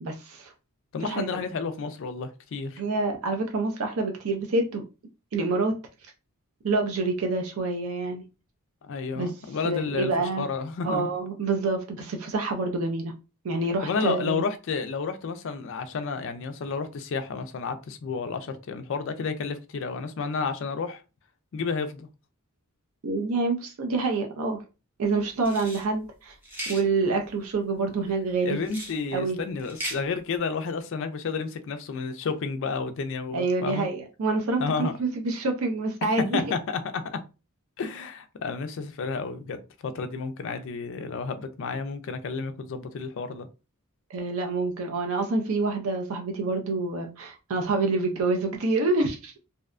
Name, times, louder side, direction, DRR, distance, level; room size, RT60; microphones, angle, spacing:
voice 1, 0.0-0.5 1.0-1.3 2.8-4.8 5.3-5.7 6.6-8.2 9.2-9.3 9.6-10.5 10.8-13.1 13.4-14.4 23.0-24.6 25.0-26.3 26.7-28.6 29.1-29.4 33.3-36.4 44.1-49.4, right 3 dB, 65° right, 0.5 m, -27 dB
voice 2, 0.9-2.8 8.8-11.1 13.8-21.0 21.5-22.1 28.4-33.9 34.6-34.9 36.3-37.2 37.8-43.5, left 5 dB, 55° left, 0.3 m, -31 dB
sound 1, 25.4-25.8 26.4-26.8 28.6-29.0 29.6-30.0, right 1 dB, 10° right, 0.5 m, -36 dB
2.6 x 2.1 x 2.4 m
head